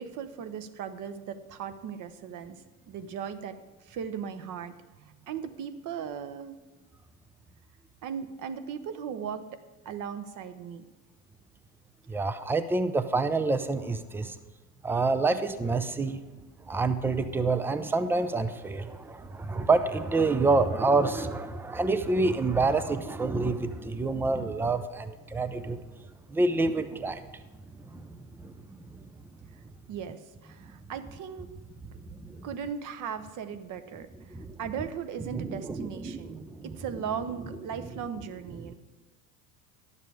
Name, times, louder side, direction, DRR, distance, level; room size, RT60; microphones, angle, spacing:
voice 1, 0.0-2.6 2.9-3.6 3.8-6.6 8.0-9.4 9.8-10.9 29.9-31.5 32.4-34.1 34.6-36.4 36.6-38.7, right 7 dB, 40° right, 10 dB, 0.9 m, -37 dB
voice 2, 12.1-14.4 14.8-16.2 16.7-25.8 26.3-27.2 27.8-28.1 28.4-28.5 34.3-34.5 35.3-36.8 38.7-38.8, right 3 dB, 5° right, 11 dB, 0.4 m, -27 dB
11.0 x 7.5 x 4.8 m, 1.2 s
hypercardioid pair, 85°, 47 cm